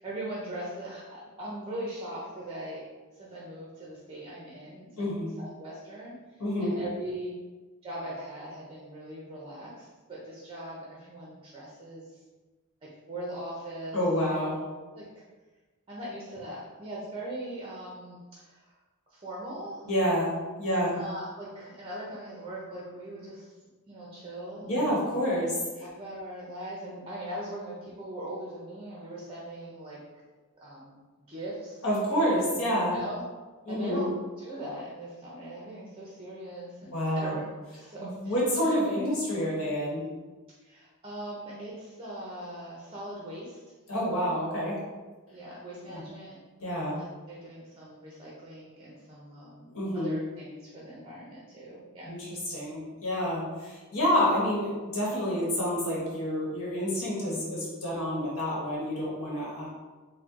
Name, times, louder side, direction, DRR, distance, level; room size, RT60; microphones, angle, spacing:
voice 1, 0.0-2.8 3.1-5.1 5.4-6.1 6.6-7.4 7.8-12.2 12.8-14.0 14.9-15.1 15.9-18.7 19.1-19.9 20.6-23.5 23.9-24.9 25.8-30.0 30.6-31.0 31.3-31.8 32.8-33.2 33.7-37.4 37.7-38.3 38.6-38.7 40.6-43.7 45.3-46.4 46.9-52.1, right 1 dB, 25° right, -5 dB, 0.6 m, -40 dB
voice 2, 5.0-5.3 6.4-6.7 13.9-14.6 19.8-20.3 20.6-20.9 24.6-25.9 31.8-33.0 33.6-34.0 36.9-37.3 38.0-40.0 43.9-44.8 45.9-46.0 46.6-46.9 49.7-50.1 52.0-59.7, equal, 70° left, -6 dB, 1.1 m, -28 dB
4.2 x 2.2 x 3.6 m, 1.3 s
head